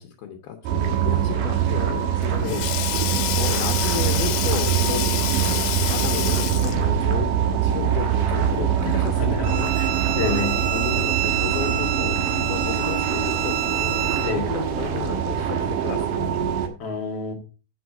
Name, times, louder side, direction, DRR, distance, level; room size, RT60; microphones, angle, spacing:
voice 1, 0.0-3.0 3.3-5.1 5.4-16.8, left 9 dB, 70° left, 3 dB, 2.5 m, -33 dB
sound 1, 0.6-16.7, right 8 dB, 60° right, 2.3 m, -24 dB
Sink (filling or washing), 1.8-7.0, left 14 dB, 90° left, 3.5 m, -28 dB
Bowed string instrument, 9.4-14.4, right 12 dB, 85° right, 2.2 m, -27 dB
voice 2, 10.1-10.6 14.2-14.5 16.8-17.3, left 4 dB, 50° left, 3 dB, 1.9 m, -28 dB
8.2 x 6.9 x 6.0 m, 0.35 s
omnidirectional pair, 5.8 m